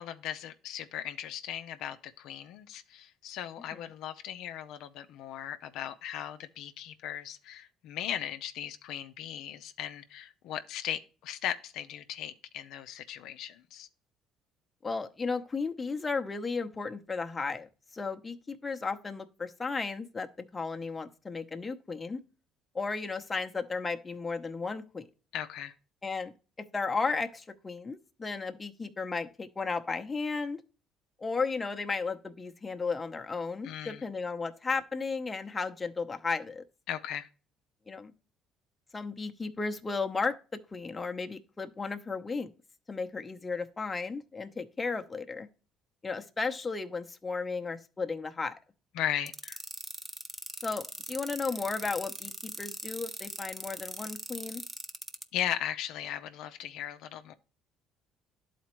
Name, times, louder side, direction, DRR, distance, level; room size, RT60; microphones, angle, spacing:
voice 1, 0.0-13.9 25.3-25.7 33.6-34.0 36.9-37.3 48.9-49.6 55.3-57.3, left 10 dB, 75° left, 0.5 m, -37 dB
voice 2, 14.8-17.7 17.9-22.2 22.7-25.1 26.0-26.3 26.7-30.6 31.2-36.6 37.9-38.1 38.9-40.4 40.7-42.5 42.9-45.5 46.0-48.5 50.6-54.6, left 4 dB, 25° left, 0.8 m, -34 dB
sound 1, 49.3-55.2, right 1 dB, 15° right, 0.7 m, -40 dB
11.5 x 4.2 x 3.0 m
supercardioid pair, 85°, 0 cm